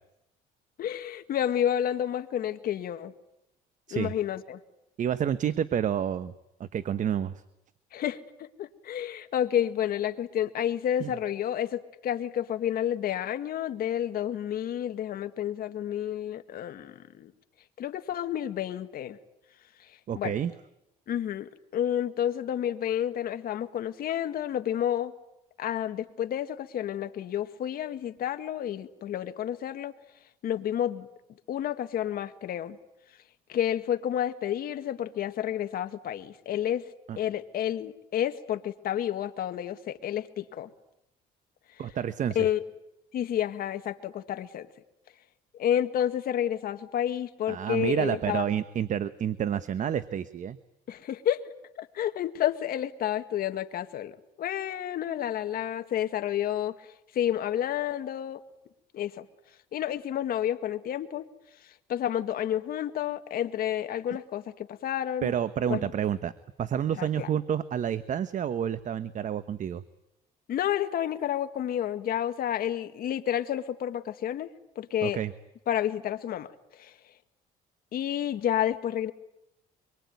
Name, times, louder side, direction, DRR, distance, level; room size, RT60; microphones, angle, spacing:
voice 1, 0.8-3.1 3.9-4.6 7.9-17.3 17.8-19.2 20.2-20.3 21.1-25.1 25.6-29.9 30.4-31.1 31.5-32.8 33.5-36.8 37.2-40.7 42.4-42.6 43.1-44.7 45.6-48.5 50.9-51.4 51.8-54.1 54.4-58.4 58.9-59.3 59.7-61.3 61.9-65.3 65.7-65.9 67.0-67.3 70.5-74.5 74.8-75.2 75.7-76.9 77.9-79.1, left 10 dB, 60° left, 8 dB, 1.9 m, -30 dB
voice 2, 5.0-6.3 6.6-7.4 11.0-11.1 20.1-20.5 37.1-37.2 41.8-42.5 47.5-50.6 65.2-66.3 66.6-69.8 75.0-75.3, right 9 dB, 50° right, 13 dB, 1.1 m, -29 dB
25.0 x 23.0 x 9.5 m, 0.86 s
cardioid pair, 110°, 17 cm